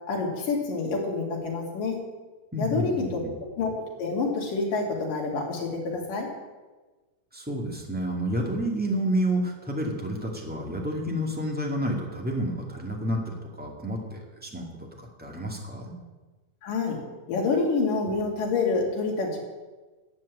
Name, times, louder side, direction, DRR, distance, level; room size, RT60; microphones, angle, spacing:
voice 1, 0.1-2.0 2.6-3.0 3.6-6.3 16.6-17.0 17.3-19.4, left 4 dB, 75° left, -1 dB, 4.2 m, -27 dB
voice 2, 2.5-3.3 7.3-15.9 18.1-18.2, equal, 5° right, -1 dB, 1.2 m, -30 dB
12.0 x 7.7 x 8.5 m, 1.3 s
omnidirectional pair, 3.8 m